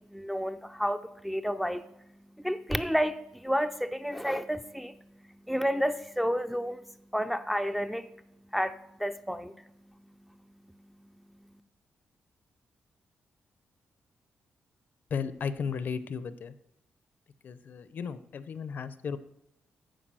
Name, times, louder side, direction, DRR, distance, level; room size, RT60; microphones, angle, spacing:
voice 1, 0.0-1.8 2.3-6.8 7.1-8.1 8.5-9.6, equal, ahead, 7 dB, 0.3 m, -31 dB
voice 2, 15.1-16.5 17.4-19.2, left 6 dB, 55° left, 14 dB, 0.5 m, -35 dB
10.0 x 4.9 x 7.5 m, 0.79 s
wide cardioid pair, 165°, 4 cm